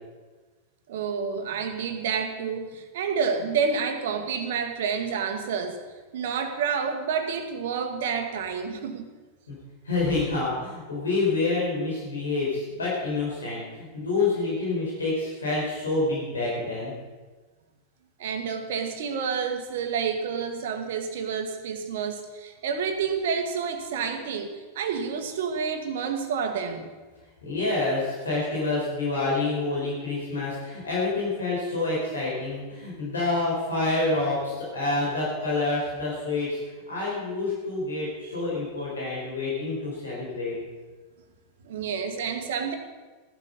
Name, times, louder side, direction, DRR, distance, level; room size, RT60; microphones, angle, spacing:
voice 1, 0.9-5.8 6.1-9.1 18.2-26.9 38.4-38.5 38.8-38.9 41.6-42.8, right 6 dB, 55° right, 6 dB, 1.8 m, -29 dB
voice 2, 9.8-16.9 27.4-36.6 36.9-40.6, left 3 dB, 70° left, -5 dB, 4.9 m, -27 dB
15.5 x 12.0 x 5.5 m, 1.3 s
figure-of-eight pair, 90°, 0 cm